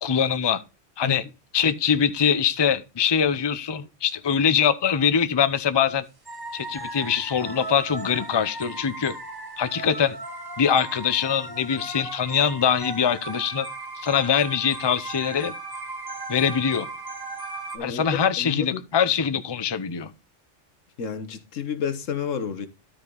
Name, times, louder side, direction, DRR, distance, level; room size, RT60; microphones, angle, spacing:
voice 1, 0.0-0.6 1.0-1.2 1.5-6.0 6.5-9.1 9.6-10.2 10.6-13.7 14.0-15.5 16.3-16.9 17.8-20.1, left 7 dB, 30° left, 0.6 m, -23 dB
sound 1, 6.2-17.8, right 3 dB, 20° right, 1.3 m, -37 dB
voice 2, 18.4-18.9 21.0-22.7, left 7 dB, 85° left, 1.4 m, -30 dB
13.0 x 5.1 x 3.8 m
omnidirectional pair, 1.3 m